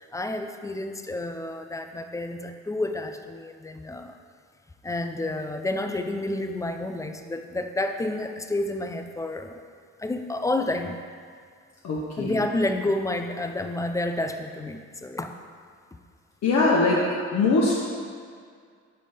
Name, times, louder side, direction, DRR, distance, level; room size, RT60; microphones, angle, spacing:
voice 1, 0.0-4.2 4.8-9.6 10.0-11.0 12.2-15.3, left 2 dB, 10° left, 6 dB, 0.3 m, -30 dB
voice 2, 11.8-12.4 16.4-17.0 17.3-17.8, left 3 dB, 60° left, -5 dB, 0.8 m, -22 dB
5.1 x 3.4 x 5.4 m, 2.1 s
cardioid pair, 90°, 30 cm